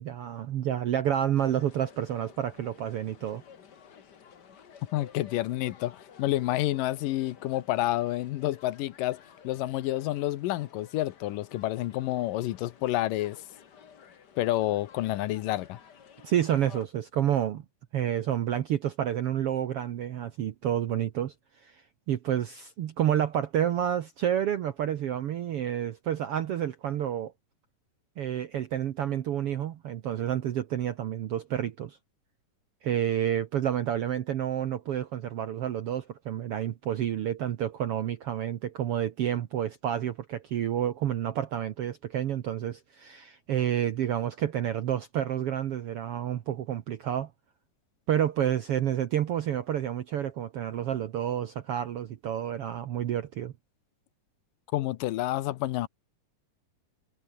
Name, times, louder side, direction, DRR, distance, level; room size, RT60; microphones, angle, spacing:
voice 1, 0.0-3.4 16.2-17.6 17.9-21.8 22.1-27.3 28.2-32.0 32.8-47.3 48.1-53.5, right 10 dB, 70° right, 1.4 m, -29 dB
sound 1, 1.4-16.9, left 7 dB, 45° left, 1.4 m, -53 dB
voice 2, 4.9-13.4 14.4-15.8 54.7-55.9, left 15 dB, 80° left, 2.5 m, -29 dB
omnidirectional pair, 3.9 m